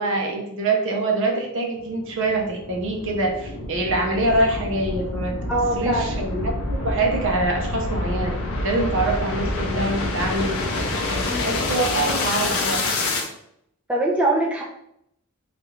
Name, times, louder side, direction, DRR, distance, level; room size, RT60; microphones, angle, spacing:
voice 1, 0.0-5.4 5.8-8.3 8.6-10.6 11.4-12.8, right 2 dB, 60° right, 1 dB, 0.6 m, -24 dB
sound 1, 1.8-13.3, left 2 dB, 65° left, 0.5 m, -27 dB
voice 2, 5.5-6.2 11.2-11.5 13.9-14.6, right 1 dB, 5° right, -4 dB, 0.4 m, -22 dB
3.2 x 2.4 x 3.0 m, 0.76 s
head